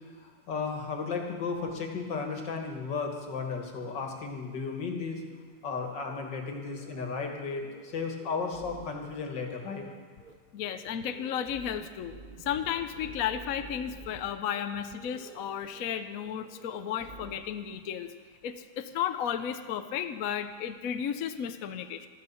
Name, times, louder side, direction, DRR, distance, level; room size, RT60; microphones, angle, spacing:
voice 1, 0.2-5.2 5.6-9.8, left 4 dB, 80° left, 2 dB, 2.5 m, -34 dB
sound 1, 6.0-6.2 6.5-7.0 7.2-7.4 7.7-9.1 9.4-9.9 10.2-10.3 10.6-14.2 14.5-14.6 15.0-15.5 15.7-15.9 16.2-17.4, right 4 dB, 40° right, 0.8 m, -50 dB
voice 2, 10.5-12.1 12.4-18.1 18.4-22.1, left 9 dB, 60° left, 9 dB, 1.0 m, -33 dB
13.5 x 12.5 x 7.1 m, 1.5 s
omnidirectional pair, 1.9 m